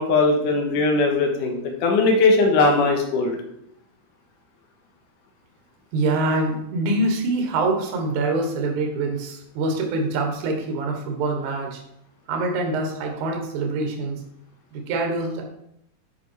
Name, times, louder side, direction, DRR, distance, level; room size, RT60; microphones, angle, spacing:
voice 1, 0.0-3.4, left 3 dB, 65° left, 2 dB, 2.6 m, -19 dB
voice 2, 5.9-11.8 12.3-14.2 14.7-15.4, right 2 dB, 60° right, 2 dB, 2.4 m, -25 dB
9.4 x 5.2 x 4.7 m, 0.77 s
omnidirectional pair, 4.5 m